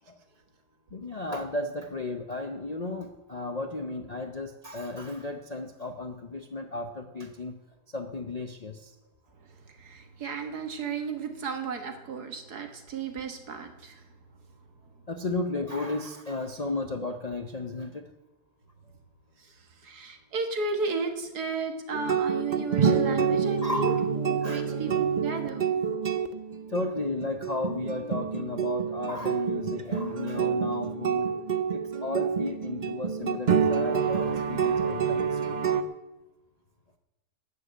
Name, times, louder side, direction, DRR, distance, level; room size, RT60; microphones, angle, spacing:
voice 1, 0.9-7.5 7.9-8.9 15.1-18.1 23.6-24.1 24.4-24.7 26.7-31.3 31.7-35.5, left 2 dB, 40° left, 5 dB, 0.5 m, -34 dB
voice 2, 9.4-14.1 14.8-14.9 19.4-25.8, right 4 dB, 75° right, 6 dB, 2.0 m, -34 dB
sound 1, 21.9-35.8, right 7 dB, 45° right, 0.6 m, -27 dB
13.5 x 6.9 x 8.9 m, 1.0 s
omnidirectional pair, 1.7 m